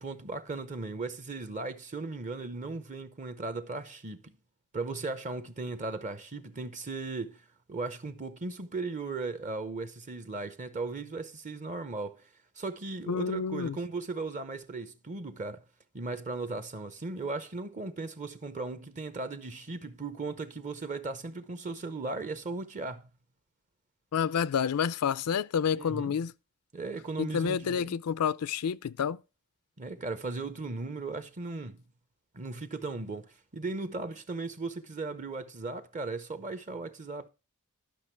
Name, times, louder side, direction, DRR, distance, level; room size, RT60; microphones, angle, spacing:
voice 1, 0.0-4.4 4.7-12.3 12.6-15.6 15.9-23.1 25.7-26.2 26.7-28.0 29.8-31.8 32.3-37.3, right 3 dB, 35° right, 0.7 m, -37 dB
voice 2, 13.1-13.8 24.1-26.3 27.2-29.2, left 7 dB, 80° left, 0.4 m, -29 dB
12.0 x 6.0 x 4.4 m
head